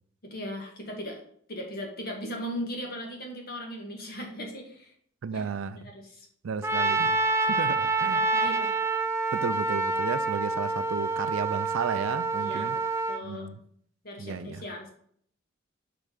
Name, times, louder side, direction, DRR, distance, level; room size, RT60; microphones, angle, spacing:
voice 1, 0.2-1.2 1.5-4.9 5.3-5.5 5.8-6.3 7.5-7.6 8.0-8.8 12.4-12.8 13.1-13.6 14.0-14.9, equal, 50° left, 1.7 m, -38 dB
voice 2, 5.2-5.9 6.4-8.2 9.3-12.8 13.2-13.6 14.2-14.6, right 6 dB, 80° right, 0.4 m, -33 dB
Trumpet, 6.6-13.2, right 3 dB, 15° right, 0.4 m, -27 dB
6.7 x 3.6 x 4.9 m
head